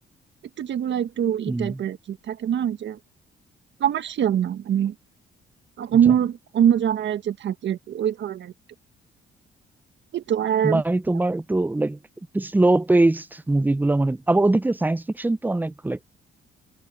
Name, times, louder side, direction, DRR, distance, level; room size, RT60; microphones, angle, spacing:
voice 1, 0.6-3.0 3.8-4.9 5.8-8.5 10.1-10.8, right 9 dB, 65° right, 1.6 m, -23 dB
voice 2, 1.5-1.8 6.1-6.2 10.6-12.0 12.3-16.0, right 2 dB, 10° right, 0.6 m, -22 dB
cardioid pair, 90°, 20 cm